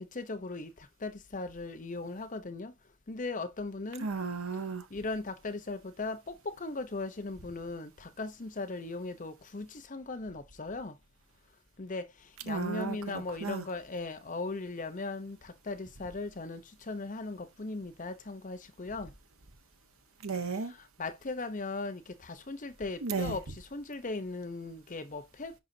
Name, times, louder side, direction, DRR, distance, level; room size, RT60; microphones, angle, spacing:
voice 1, 0.1-2.7 3.1-4.1 4.9-10.9 11.8-12.1 12.4-19.1 20.7-25.5, left 3 dB, 40° left, 0.8 m, -38 dB
voice 2, 4.0-4.9 12.5-13.6 20.2-20.7 23.0-23.4, right 4 dB, 85° right, 1.2 m, -34 dB
10.5 x 4.1 x 2.7 m
head